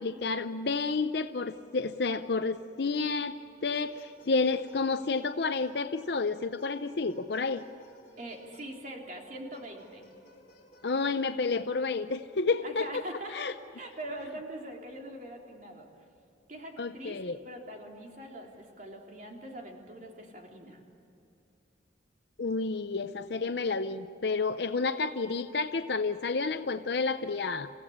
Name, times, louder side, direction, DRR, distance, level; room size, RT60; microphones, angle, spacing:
voice 1, 0.0-3.4 3.6-7.6 10.8-13.0 13.3-13.5 16.8-17.4 22.4-27.7, left 4 dB, 60° left, 10 dB, 0.6 m, -30 dB
sound 1, 3.7-6.1 6.6-8.8 9.5-11.3, equal, 45° left, 3.3 m, -58 dB
voice 2, 8.2-10.1 12.6-15.9 16.5-17.2 17.4-20.8, right 1 dB, 45° right, 0 dB, 3.4 m, -43 dB
28.5 x 16.0 x 8.6 m, 2.7 s
head